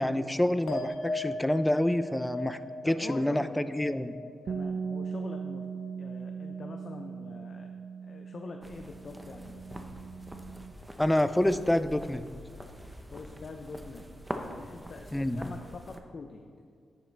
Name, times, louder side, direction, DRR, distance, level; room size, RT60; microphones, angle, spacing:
voice 1, 0.0-2.6 2.8-4.1 11.0-12.3 15.1-15.4, left 1 dB, 10° left, 12 dB, 0.4 m, -27 dB
sound 1, 0.7-7.4 7.6-8.3, left 2 dB, 80° left, 1.4 m, -40 dB
voice 2, 2.8-3.6 4.4-5.7 6.0-7.7 8.0-10.0 13.1-16.5, left 4 dB, 55° left, 4 dB, 0.7 m, -45 dB
Bass guitar, 4.5-10.7, right 6 dB, 60° right, 0.4 m, -39 dB
sound 2, 8.6-16.0, equal, 10° right, 0.9 m, -44 dB
10.5 x 9.7 x 3.4 m, 2.2 s
cardioid pair, 85°, 0 cm